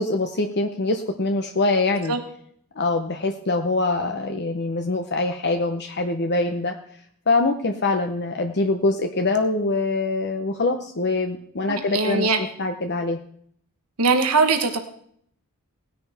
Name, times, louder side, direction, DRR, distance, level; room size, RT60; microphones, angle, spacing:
voice 1, 0.0-2.2 2.8-6.7 7.3-12.3 12.6-13.2, left 3 dB, 50° left, 5 dB, 0.8 m, -24 dB
voice 2, 11.7-12.4 14.0-14.8, right 4 dB, 85° right, 6 dB, 1.2 m, -21 dB
19.0 x 10.0 x 3.5 m, 0.65 s
head